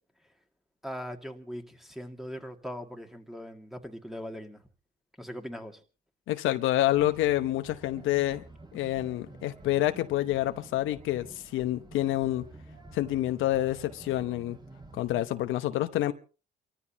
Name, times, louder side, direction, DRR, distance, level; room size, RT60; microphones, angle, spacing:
voice 1, 0.8-4.6 5.2-5.8, equal, ahead, 2.0 m, -40 dB
voice 2, 6.3-8.4 8.7-12.5 12.9-14.6 14.9-16.1, left 14 dB, 85° left, 0.9 m, -28 dB
sound 1, 6.9-15.5, right 2 dB, 20° right, 2.4 m, -50 dB
28.5 x 14.0 x 2.9 m
cardioid pair, 90°, 20 cm